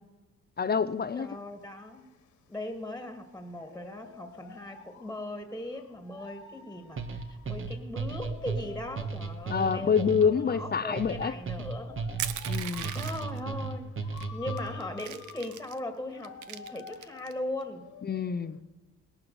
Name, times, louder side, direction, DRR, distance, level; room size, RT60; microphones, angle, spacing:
sound 1, 0.6-18.6, left 8 dB, 80° left, 2.0 m, -50 dB
voice 1, 0.6-1.3 9.5-11.3 12.5-12.9 18.0-18.6, left 6 dB, 30° left, 0.7 m, -27 dB
voice 2, 1.1-2.1 2.5-12.0 12.9-17.9, left 1 dB, 5° left, 2.1 m, -39 dB
sound 2, 7.0-14.9, right 4 dB, 45° right, 1.7 m, -35 dB
Crushing, 12.2-13.4 14.2-14.3 14.6-15.8 16.2-17.3, right 11 dB, 75° right, 0.9 m, -38 dB
19.0 x 11.0 x 7.0 m
cardioid pair, 90°, 30 cm